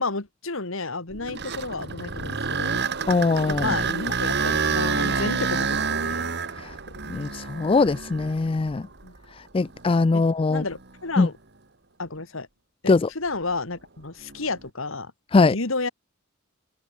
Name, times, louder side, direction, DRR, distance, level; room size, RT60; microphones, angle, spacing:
voice 1, 0.0-2.8 3.5-6.3 9.0-9.1 10.1-10.2 10.5-11.4 12.0-12.5 12.8-15.1 15.4-15.9, left 3 dB, 65° left, 2.1 m, -31 dB
sound 1, 1.1-9.2 9.8-9.9 10.6-10.7 14.2-14.6, right 5 dB, 50° right, 2.4 m, -28 dB
voice 2, 3.1-3.7 6.6-6.7 7.1-8.8 9.5-10.6 11.2-11.3 12.9-13.1 15.3-15.6, left 3 dB, 25° left, 0.3 m, -21 dB
head